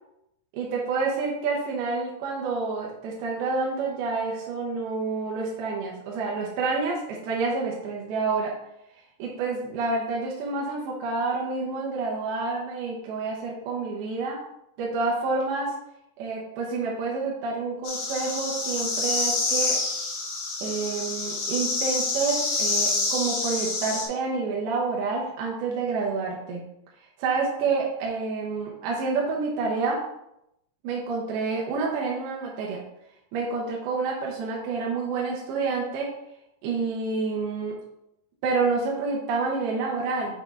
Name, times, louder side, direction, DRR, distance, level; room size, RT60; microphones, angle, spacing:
voice 1, 0.5-8.5 9.2-14.4 14.8-15.7 16.2-19.8 20.6-26.7 27.2-30.0 30.8-32.8 33.3-36.1 36.6-37.8 38.4-40.4, right 4 dB, 75° right, -3 dB, 2.6 m, -28 dB
sound 1, 17.8-24.1, left 3 dB, 80° left, 3.5 m, -27 dB
7.8 x 6.0 x 2.4 m, 0.83 s
omnidirectional pair, 4.9 m